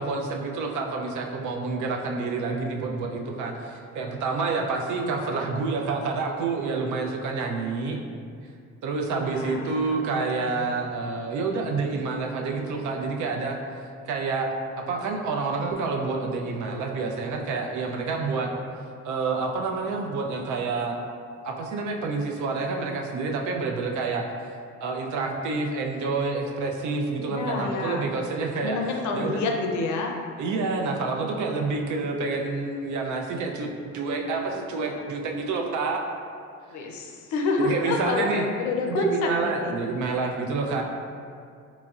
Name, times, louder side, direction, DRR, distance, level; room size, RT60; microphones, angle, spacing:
voice 1, 0.0-8.0 8.8-13.6 14.1-14.5 14.8-18.5 19.0-21.0 21.4-24.5 24.8-28.8 29.1-29.4 30.4-36.0 37.6-38.5 38.9-40.8, right 4 dB, 75° right, 2 dB, 0.5 m, -28 dB
voice 2, 9.1-9.7 10.1-10.7 27.3-28.1 28.6-30.2 36.7-39.7, left 3 dB, 70° left, 1 dB, 0.6 m, -29 dB
3.9 x 3.0 x 2.4 m, 2.3 s
cardioid pair, 90°, 30 cm